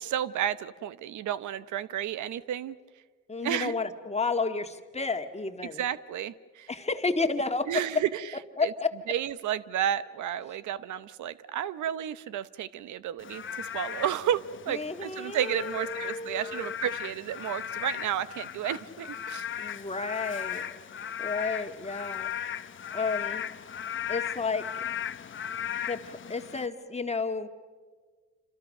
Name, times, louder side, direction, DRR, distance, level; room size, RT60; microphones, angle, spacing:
voice 1, 0.0-2.8 3.4-3.7 5.8-6.7 7.7-8.3 8.6-8.7 9.1-19.5, right 10 dB, 75° right, 15 dB, 0.9 m, -32 dB
voice 2, 3.3-5.8 6.7-7.7 8.6-8.9 14.7-16.7 19.6-20.7 21.2-22.3 22.9-23.4 24.1-24.8 25.9-27.5, left 4 dB, 20° left, 7 dB, 1.9 m, -31 dB
Frog / Rain, 13.2-26.7, left 9 dB, 40° left, 0.9 m, -37 dB
28.0 x 26.5 x 6.6 m, 1.5 s
cardioid pair, 90°, 30 cm